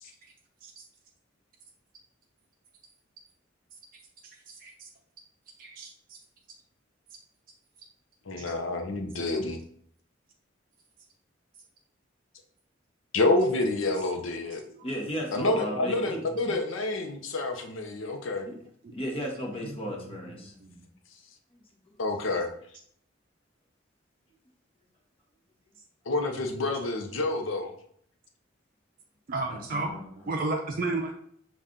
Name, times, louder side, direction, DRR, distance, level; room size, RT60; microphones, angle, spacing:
voice 1, 5.6-5.9 14.7-14.9 16.5-16.6 19.6-20.9 29.3-31.1, right 2 dB, 50° right, 2 dB, 0.5 m, -33 dB
voice 2, 8.3-9.6 13.1-14.6 15.3-18.5 22.0-22.5 26.1-27.7, left 2 dB, 85° left, 5 dB, 0.7 m, -28 dB
voice 3, 14.8-16.2 18.5-18.6 18.9-20.5 29.5-30.4, equal, 30° left, 0 dB, 0.9 m, -35 dB
5.6 x 2.4 x 3.7 m, 0.64 s
head